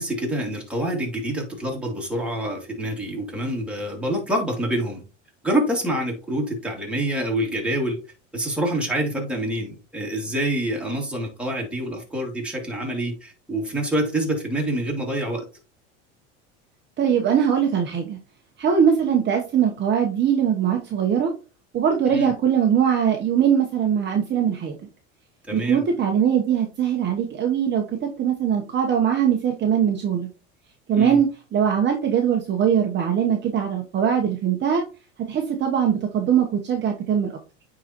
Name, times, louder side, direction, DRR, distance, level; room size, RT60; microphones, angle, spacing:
voice 1, 0.0-5.0 5.4-8.0 8.3-15.4 22.1-22.3 25.5-25.8 30.9-31.2, right 1 dB, 5° right, -1 dB, 2.4 m, -26 dB
voice 2, 17.0-18.2 18.6-21.3 21.7-24.7 25.5-30.3 30.9-34.8 35.3-37.3, right 8 dB, 35° right, 2 dB, 1.0 m, -21 dB
9.1 x 3.9 x 2.9 m, 0.33 s
supercardioid pair, 115°, 33 cm